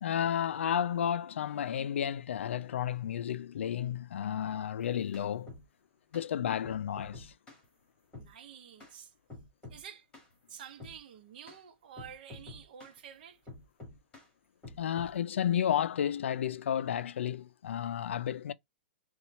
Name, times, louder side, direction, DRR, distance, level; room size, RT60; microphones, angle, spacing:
voice 1, 0.0-5.5 6.1-7.3 14.8-18.5, left 9 dB, 85° left, 0.4 m, -32 dB
sound 1, 4.8-5.7 6.1-6.3 6.6-7.6 8.1-8.3 8.8-9.0 9.3-9.8 10.1-10.3 10.8-11.0 11.5-11.6 12.0-13.0 13.5-14.3 14.6-15.2, left 3 dB, 15° left, 1.8 m, -48 dB
voice 2, 8.1-9.1 9.7-10.1 10.5-13.4, right 8 dB, 50° right, 0.9 m, -49 dB
4.3 x 2.4 x 4.1 m
hypercardioid pair, 170°, 6 cm